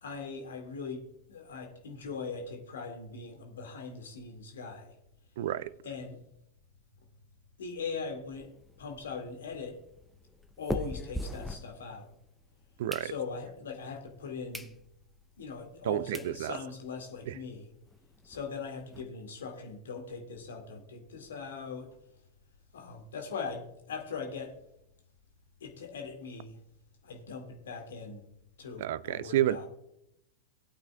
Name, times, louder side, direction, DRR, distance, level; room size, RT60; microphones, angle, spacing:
voice 1, 0.0-4.9 5.8-6.2 7.6-9.8 10.6-12.1 13.0-14.7 15.4-17.7 18.2-21.9 22.7-24.5 25.6-26.6 27.0-28.3 28.6-29.7, left 5 dB, 65° left, 2.1 m, -40 dB
voice 2, 5.4-5.8 12.8-13.1 15.8-16.6 17.3-17.4 28.8-29.6, right 13 dB, 55° right, 0.4 m, -30 dB
sound 1, 8.3-12.3 12.6-13.6 14.1-14.2 14.5-14.8 15.2-15.3 15.8-15.9 16.1-16.3 16.8-16.9 17.0-17.2 17.5-17.6 17.9-19.0, left 1 dB, ahead, 0.7 m, -40 dB
19.0 x 8.8 x 2.3 m
figure-of-eight pair, 90°, 0 cm